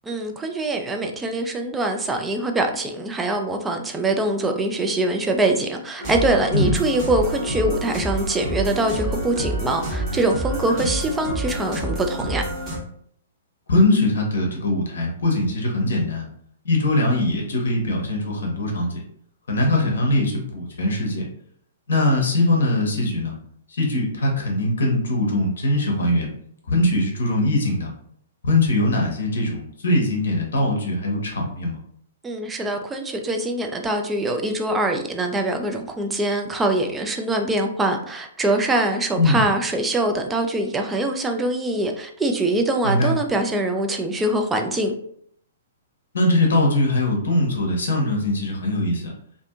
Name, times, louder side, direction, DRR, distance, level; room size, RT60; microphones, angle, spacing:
voice 1, 0.0-12.4 32.2-44.9, right 2 dB, 10° right, 4 dB, 0.3 m, -23 dB
sound 1, 6.0-12.8, right 1 dB, 25° right, 0.9 m, -28 dB
voice 2, 13.7-16.3 16.6-19.0 19.5-21.3 21.9-23.4 23.7-26.3 26.7-27.9 28.4-31.8 39.2-39.4 42.8-43.1 46.1-49.1, left 1 dB, 60° left, 1 dB, 0.7 m, -21 dB
2.5 x 2.5 x 2.3 m, 0.66 s
figure-of-eight pair, 115°, 0 cm